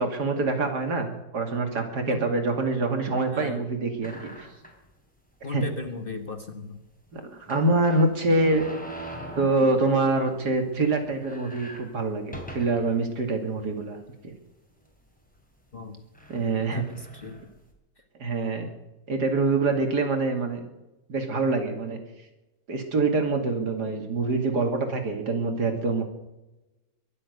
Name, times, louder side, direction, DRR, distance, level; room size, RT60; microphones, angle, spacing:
voice 1, 0.0-4.5 5.5-5.6 7.1-8.6 9.4-14.0 14.2-14.3 16.3-16.8 18.2-18.7 19.1-20.6 21.1-22.0 22.7-26.0, right 3 dB, 65° right, 5 dB, 2.9 m, -25 dB
voice 2, 3.3-3.7 5.4-6.8 15.7-16.0 16.6-17.4, left 3 dB, 35° left, 6 dB, 1.3 m, -36 dB
sound 1, 4.0-4.9 5.4-5.5 5.8-5.9 7.5-10.4 10.7-10.8 11.1-13.0 13.6-13.7 14.6-14.9 15.7-15.8 16.1-17.7, equal, 5° left, 3.3 m, -42 dB
23.0 x 7.7 x 8.1 m, 1.0 s
omnidirectional pair, 1.9 m